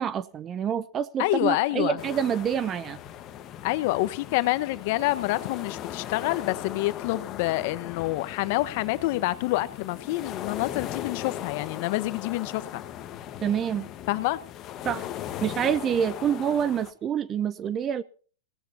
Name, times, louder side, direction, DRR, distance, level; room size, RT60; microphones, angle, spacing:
voice 1, 0.0-3.0 13.4-13.9 14.8-15.1 15.4-18.0, right 8 dB, 25° right, 0.6 m, -27 dB
voice 2, 1.2-2.0 3.6-12.8 14.1-14.4, left 18 dB, 55° left, 1.2 m, -27 dB
sound 1, 2.0-16.9, left 11 dB, 35° left, 1.5 m, -38 dB
17.5 x 17.5 x 2.9 m
hypercardioid pair, 130°, 0 cm